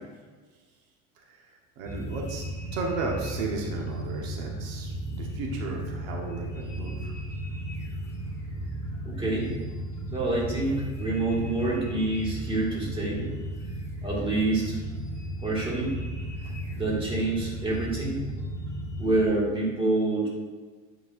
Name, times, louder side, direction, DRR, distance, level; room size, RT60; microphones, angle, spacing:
voice 1, 1.2-2.4 2.7-7.1 16.4-16.5, right 3 dB, 85° right, 0 dB, 1.2 m, -35 dB
sound 1, 1.8-19.3, right 1 dB, 10° left, 1.1 m, -35 dB
voice 2, 9.0-9.5 10.1-13.3 14.0-14.8 15.4-16.0 16.7-18.3 19.0-20.3, right 2 dB, 15° right, -5 dB, 1.9 m, -27 dB
9.3 x 4.6 x 2.5 m, 1.4 s
supercardioid pair, 125°, 40 cm